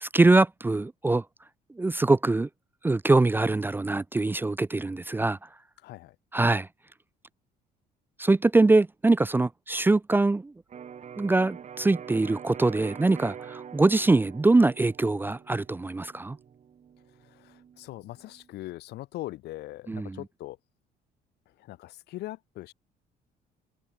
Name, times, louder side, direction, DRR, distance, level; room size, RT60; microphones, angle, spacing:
voice 1, 0.0-1.2 1.8-2.5 2.8-5.4 6.3-6.7 8.2-10.5 11.2-16.4 19.9-20.2, right 2 dB, 10° right, 0.5 m, -23 dB
voice 2, 5.8-6.1 17.2-20.6 21.6-22.7, left 16 dB, 75° left, 1.6 m, -41 dB
Electric guitar, 10.7-18.5, right 8 dB, 45° right, 4.2 m, -45 dB
cardioid pair, 110°, 17 cm